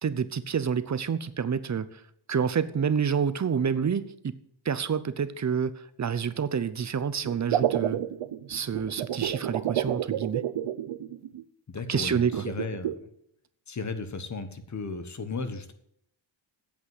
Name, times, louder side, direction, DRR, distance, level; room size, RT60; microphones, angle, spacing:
voice 1, 0.0-2.0 2.3-4.4 4.6-8.0 8.5-10.4 11.9-12.4, right 7 dB, 35° right, 14 dB, 0.7 m, -28 dB
sound 1, 7.2-11.4 12.3-13.0, right 11 dB, 85° right, 0.8 m, -30 dB
voice 2, 11.7-12.9 13.7-15.7, left 4 dB, 35° left, 9 dB, 1.2 m, -35 dB
8.7 x 8.2 x 7.7 m, 0.72 s
wide cardioid pair, 140°, 47 cm